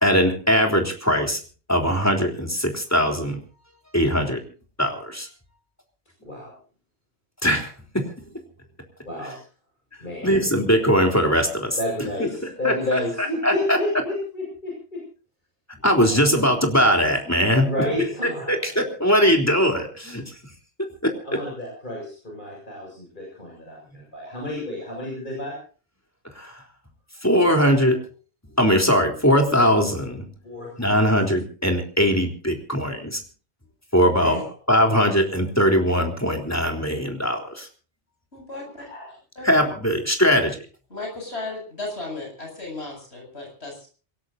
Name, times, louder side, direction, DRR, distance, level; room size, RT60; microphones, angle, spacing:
voice 1, 0.0-1.4 1.7-3.4 3.9-4.4 4.8-5.3 7.4-8.0 10.2-12.3 12.6-13.8 15.8-17.7 18.5-20.2 20.8-21.1 26.4-26.6 27.2-28.0 28.6-30.3 30.8-33.2 33.9-34.4 34.7-37.7 39.4-40.6, equal, 15° left, 2 dB, 3.6 m, -21 dB
voice 2, 6.2-6.5 9.1-9.4 10.0-10.4 11.8-15.0 16.0-16.4 17.6-18.7 21.2-25.5 30.4-31.1 34.2-34.4 38.9-39.1, left 1 dB, 45° left, -2 dB, 7.3 m, -31 dB
voice 3, 38.3-38.8 39.4-39.5 40.9-43.9, left 2 dB, 70° left, 0 dB, 8.0 m, -35 dB
27.0 x 18.0 x 2.7 m, 0.38 s
omnidirectional pair, 1.1 m